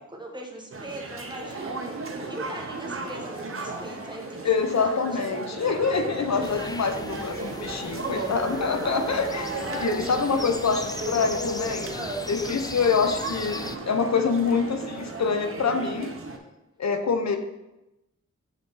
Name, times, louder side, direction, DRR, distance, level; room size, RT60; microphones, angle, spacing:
voice 1, 0.0-1.8 2.2-4.5 4.8-4.9 7.7-7.8 8.1-9.1 9.6-10.5 11.9-12.3, right 1 dB, 15° right, 0 dB, 1.1 m, -39 dB
sound 1, 0.7-16.4, right 2 dB, 45° right, 0.8 m, -36 dB
Chatter, 1.1-15.2, right 2 dB, 70° right, 1.1 m, -44 dB
voice 2, 4.4-9.5 9.7-11.9 12.3-16.1 16.8-17.4, left 5 dB, 65° left, 6 dB, 0.7 m, -25 dB
sound 2, 6.4-13.8, left 2 dB, 15° left, 0.3 m, -38 dB
7.1 x 3.5 x 3.9 m, 0.96 s
wide cardioid pair, 70°, 30 cm